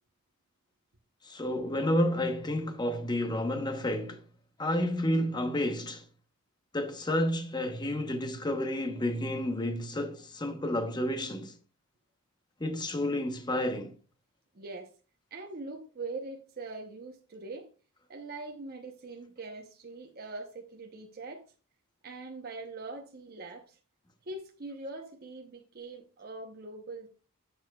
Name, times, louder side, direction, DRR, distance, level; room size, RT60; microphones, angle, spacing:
voice 1, 1.2-4.2 4.6-6.0 6.7-11.6 12.6-14.0, left 1 dB, 20° left, 0.9 m, -30 dB
voice 2, 14.5-14.9 15.3-17.7 18.1-21.5 22.0-23.8 24.2-27.1, right 3 dB, 45° right, 0.8 m, -42 dB
10.5 x 6.8 x 2.3 m
head